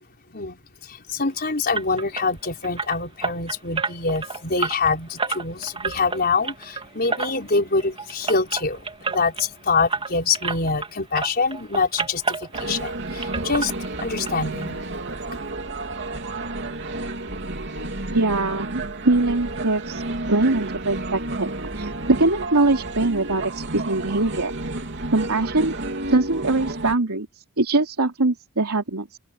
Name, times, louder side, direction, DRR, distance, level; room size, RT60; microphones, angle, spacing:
voice 1, 0.3-13.7 14.0-14.8 15.3-15.4, left 4 dB, 45° left, 4.8 m, -25 dB
sound 1, 1.7-10.9 11.1-12.9 13.2-14.3 14.6-14.7 15.1-15.2 15.6-15.7, right 4 dB, 25° right, 3.3 m, -30 dB
sound 2, 12.5-26.9, right 2 dB, 55° right, 3.2 m, -31 dB
voice 2, 18.1-20.0 20.3-24.5 25.1-25.7 26.1-29.2, right 2 dB, 80° right, 3.1 m, -22 dB
open air
head